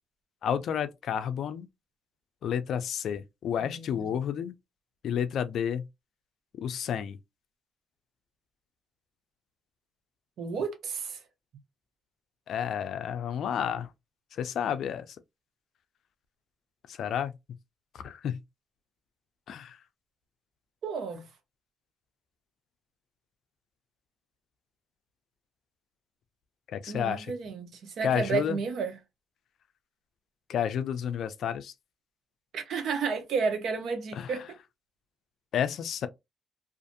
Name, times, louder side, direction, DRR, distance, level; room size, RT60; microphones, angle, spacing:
voice 1, 0.4-1.7 2.4-4.5 5.0-5.8 6.6-7.2 12.5-13.9 14.3-15.2 16.9-17.3 18.0-18.4 19.5-19.8 26.7-27.3 28.0-28.6 30.5-31.7 34.1-34.3 35.5-36.1, left 8 dB, 70° left, 0.4 m, -31 dB
voice 2, 3.6-4.1 10.4-11.2 20.8-21.3 26.9-29.0 32.5-34.4, right 5 dB, 70° right, 0.7 m, -32 dB
2.5 x 2.4 x 2.5 m
cardioid pair, 90°, 0 cm